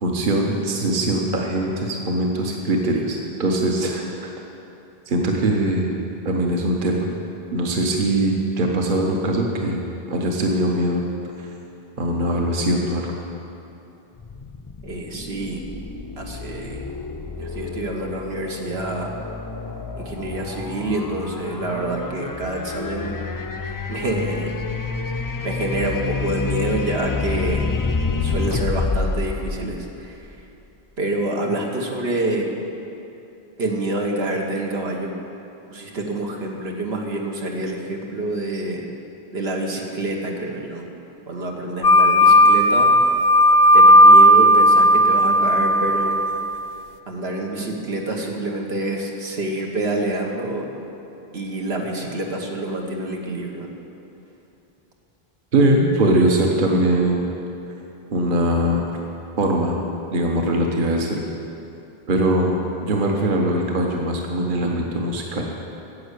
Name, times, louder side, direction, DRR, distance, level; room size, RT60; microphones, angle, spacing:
voice 1, 0.0-4.3 5.1-5.9 6.2-7.1 7.5-9.8 10.1-11.0 11.4-11.5 12.0-13.1 55.5-57.3 58.1-58.8 59.4-59.8 60.1-61.2 62.1-65.4, right 1 dB, 55° right, 0 dB, 1.2 m, -21 dB
sound 1, 14.2-30.4, left 4 dB, 35° left, 0.3 m, -29 dB
voice 2, 14.8-15.6 16.2-16.9 17.4-19.2 19.9-23.2 23.6-24.5 25.4-27.6 28.2-30.5 31.0-32.5 33.6-35.1 35.7-38.8 39.3-40.8 41.3-42.9 43.7-46.2 47.1-50.7 51.3-53.7, right 1 dB, 80° right, 0 dB, 1.5 m, -27 dB
sound 2, 41.8-46.7, equal, 70° left, 0.7 m, -13 dB
10.5 x 7.5 x 8.2 m, 2.8 s
omnidirectional pair, 1.0 m